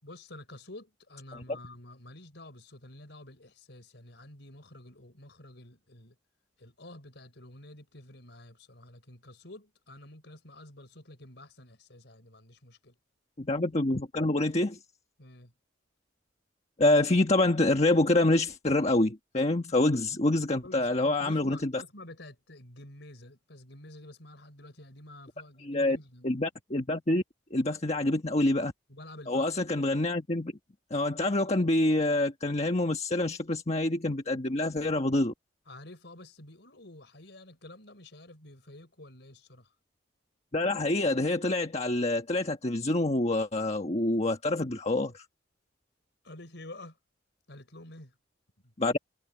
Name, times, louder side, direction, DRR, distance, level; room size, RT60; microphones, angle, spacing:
voice 1, 0.0-6.2 6.6-13.0 15.2-15.5 20.6-26.3 28.9-29.6 34.9-35.0 35.7-39.7 46.2-47.0 47.5-48.2 48.6-48.7, left 1 dB, 65° left, 5.8 m, -49 dB
voice 2, 13.4-14.8 16.8-21.8 25.6-26.0 26.2-27.2 27.5-28.7 29.3-30.5 30.9-35.3 40.5-45.2 48.8-49.0, left 2 dB, 35° left, 1.4 m, -26 dB
head